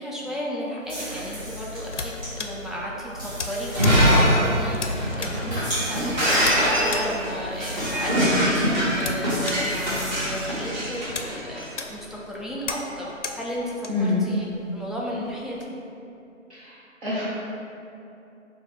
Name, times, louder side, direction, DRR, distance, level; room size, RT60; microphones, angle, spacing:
voice 1, 0.0-14.4 14.7-15.7, equal, ahead, -6 dB, 0.3 m, -34 dB
sound 1, 0.8-10.7, left 1 dB, 15° right, 1.3 m, -37 dB
sound 2, 1.4-15.6, left 4 dB, 65° left, 0.5 m, -39 dB
Shatter, 3.6-11.7, equal, 35° right, 1.3 m, -23 dB
voice 2, 13.9-14.2 16.5-16.7 17.0-17.2, left 3 dB, 55° right, -11 dB, 1.3 m, -25 dB
6.9 x 2.3 x 3.3 m, 2.7 s
figure-of-eight pair, 175°, 40 cm